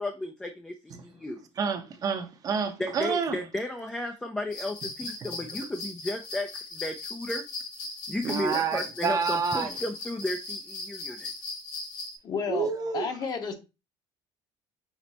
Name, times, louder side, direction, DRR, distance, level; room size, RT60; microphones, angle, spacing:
voice 1, 0.0-1.4 2.8-7.4 8.1-11.3, left 1 dB, 5° left, 0.4 m, -34 dB
voice 2, 1.6-3.4 8.2-9.7 12.5-13.1, right 5 dB, 35° right, 0.7 m, -28 dB
sound 1, 4.5-12.2, left 3 dB, 75° left, 3.0 m, -38 dB
voice 3, 12.2-12.7 12.9-13.5, left 5 dB, 35° left, 0.9 m, -31 dB
6.0 x 2.0 x 4.0 m
cardioid pair, 145°, 11 cm